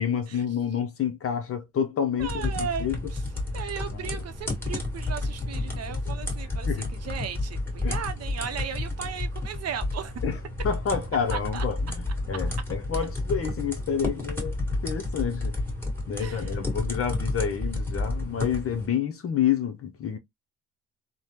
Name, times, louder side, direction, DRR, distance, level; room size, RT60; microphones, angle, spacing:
voice 1, 0.0-3.0 3.9-4.2 5.9-6.2 6.7-6.9 7.8-8.0 10.2-10.4 10.6-14.5 14.8-15.6 16.1-20.2, left 8 dB, 50° left, 0.6 m, -29 dB
sound 1, 2.2-18.9, left 2 dB, 5° left, 1.5 m, -31 dB
voice 2, 2.2-3.2 3.5-10.1 11.3-11.6 16.2-16.5, right 7 dB, 55° right, 0.6 m, -36 dB
3.3 x 2.1 x 2.8 m
cardioid pair, 90°, 30 cm